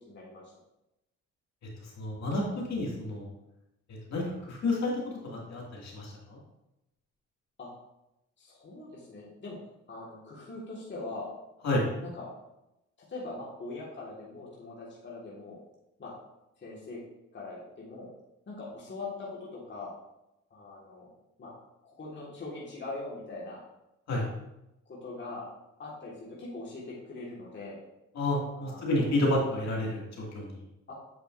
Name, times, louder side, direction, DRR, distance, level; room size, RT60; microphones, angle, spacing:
voice 1, 0.1-0.4 7.6-7.7 8.4-9.6 9.9-11.3 12.0-12.3 13.1-15.6 16.0-16.1 16.6-17.0 17.3-18.1 18.5-19.9 20.5-21.1 21.4-21.5 21.8-23.6 24.8-25.5 25.8-27.8 28.6-29.2 30.9-31.0, left 3 dB, 40° left, -4 dB, 1.8 m, -42 dB
voice 2, 2.0-2.4 2.7-3.3 4.1-4.2 4.5-4.9 5.3-6.4 11.6-11.9 24.1-24.3 28.2-30.5, left 1 dB, 60° left, -3 dB, 2.3 m, -29 dB
8.1 x 6.4 x 2.6 m, 0.92 s
cardioid pair, 90°, 30 cm